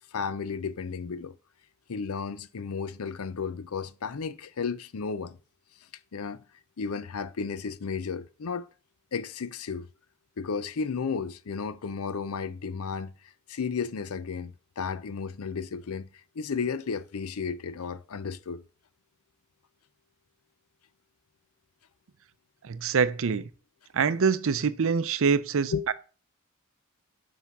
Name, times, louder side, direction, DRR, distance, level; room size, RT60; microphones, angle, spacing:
voice 1, 0.1-1.4 1.9-5.4 6.1-6.4 6.8-8.7 9.1-9.9 10.4-13.1 13.5-16.1 16.3-18.6 25.7-25.8, left 5 dB, 75° left, 0.6 m, -33 dB
voice 2, 22.6-23.5 23.9-25.9, right 5 dB, 65° right, 0.5 m, -25 dB
5.8 x 5.6 x 6.0 m
head